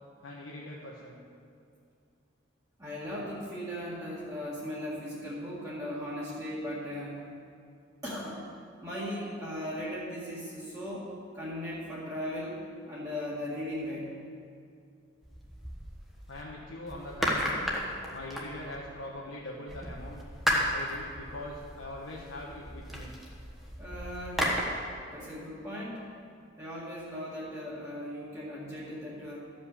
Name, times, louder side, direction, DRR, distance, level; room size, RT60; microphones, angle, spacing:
voice 1, 0.2-1.2 16.3-17.7 18.1-20.2 20.7-23.1, left 1 dB, 85° left, -5 dB, 1.3 m, -42 dB
voice 2, 2.8-7.2 8.0-8.4 8.8-14.1 23.8-24.6 25.1-26.1 26.6-29.4, equal, 15° right, -8 dB, 1.9 m, -38 dB
sound 1, 15.2-16.4 16.9-19.1 19.7-24.6, equal, ahead, 1.2 m, -34 dB
13.5 x 5.4 x 7.1 m, 2.3 s
head